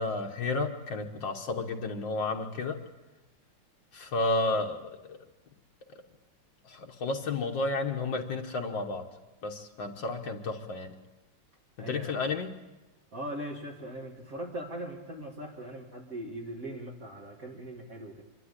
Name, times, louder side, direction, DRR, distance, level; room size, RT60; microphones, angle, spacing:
voice 1, 0.0-2.8 3.9-4.8 6.7-9.1 9.4-11.0 11.9-12.5, left 3 dB, 65° left, 3 dB, 1.9 m, -31 dB
voice 2, 11.8-12.2 13.1-18.2, right 1 dB, 40° right, -2 dB, 2.4 m, -40 dB
25.5 x 12.5 x 9.8 m, 1.1 s
omnidirectional pair, 2.3 m